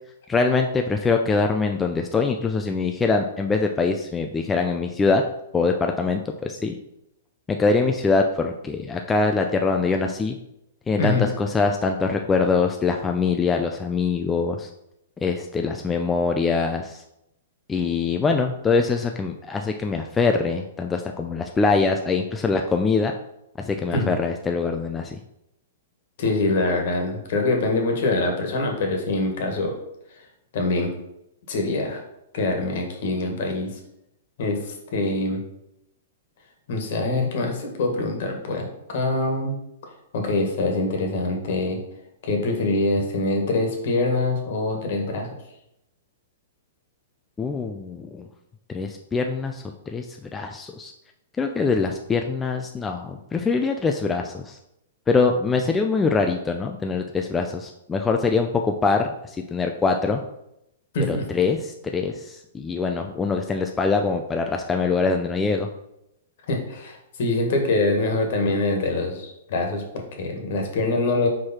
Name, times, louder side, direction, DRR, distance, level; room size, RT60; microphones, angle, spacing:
voice 1, 0.3-5.2 5.5-6.8 7.5-10.4 10.9-14.7 15.2-17.0 17.7-23.1 23.6-25.2 47.4-48.2 48.7-50.9 51.4-54.6 55.1-60.2 61.1-65.7, left 4 dB, 10° left, 3 dB, 0.4 m, -23 dB
voice 2, 11.0-11.3 23.9-24.1 26.2-29.8 30.5-30.9 31.5-32.0 32.3-33.8 34.4-35.4 36.7-39.5 40.1-41.8 42.2-45.4 60.9-61.3 66.5-71.3, left 2 dB, 55° left, 2 dB, 1.6 m, -24 dB
4.8 x 4.6 x 4.3 m, 0.82 s
hypercardioid pair, 150°, 0 cm